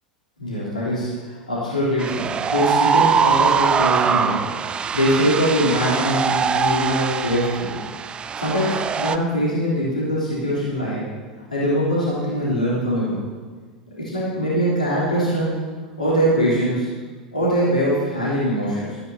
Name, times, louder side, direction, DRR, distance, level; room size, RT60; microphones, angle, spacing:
voice 1, 0.4-7.8 8.4-11.1 11.5-13.2 14.0-15.5 16.0-16.9 17.3-19.0, equal, 80° left, -8 dB, 3.7 m, -22 dB
sound 1, 2.0-9.2, right 6 dB, 25° right, 0.5 m, -22 dB
16.0 x 14.0 x 2.9 m, 1.5 s
figure-of-eight pair, 85°, 4 cm